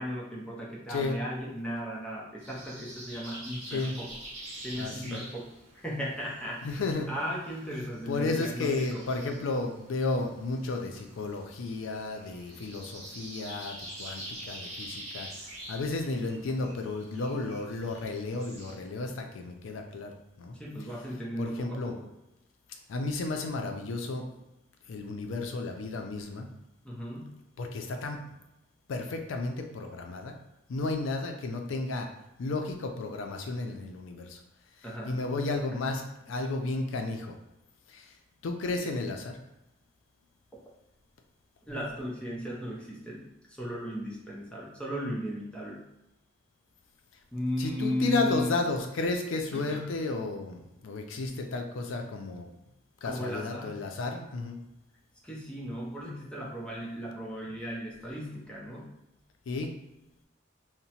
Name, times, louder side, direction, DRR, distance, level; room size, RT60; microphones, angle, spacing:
voice 1, 0.0-4.1 4.6-5.5 5.8-9.1 20.5-22.1 26.8-27.4 34.8-35.2 41.7-43.3 43.6-45.8 47.3-48.6 49.5-50.0 53.0-53.9 55.2-58.9, equal, 5° left, -4 dB, 0.5 m, -36 dB
sound 1, 2.4-18.7, right 1 dB, 35° right, 0.7 m, -46 dB
voice 2, 3.7-4.0 4.7-5.3 6.6-7.1 8.1-15.3 15.7-20.6 21.4-22.0 22.9-24.3 24.9-26.5 27.6-28.2 28.9-30.3 30.7-32.1 32.4-34.4 35.1-37.3 37.9-38.1 38.4-39.4 47.6-52.5 53.0-54.6 59.5-59.7, left 3 dB, 85° left, 4 dB, 0.4 m, -33 dB
2.8 x 2.1 x 2.8 m, 0.91 s
head